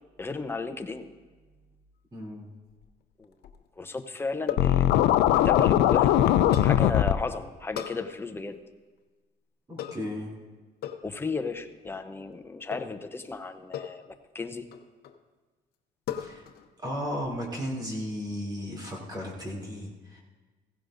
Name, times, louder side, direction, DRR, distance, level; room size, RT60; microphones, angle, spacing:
voice 1, 0.2-1.1 3.2-3.3 3.8-6.2 6.6-8.6 11.0-14.7, left 3 dB, 15° left, 7 dB, 0.7 m, -34 dB
voice 2, 2.1-2.5 9.7-10.3 16.1-16.4 16.8-20.2, equal, 25° right, -2 dB, 3.1 m, -35 dB
sound 1, 2.7-3.7 4.5-4.8 6.5-6.8 7.7-8.0 9.8-10.1 10.8-11.1 12.7-13.0 13.7-14.1 14.7-15.2 16.1-16.7 17.0-17.4, left 10 dB, 65° left, 0.8 m, -37 dB
Scratching (performance technique), 4.6-7.1, left 12 dB, 85° left, 0.5 m, -20 dB
16.0 x 15.5 x 2.6 m, 1.3 s
cardioid pair, 110°, 17 cm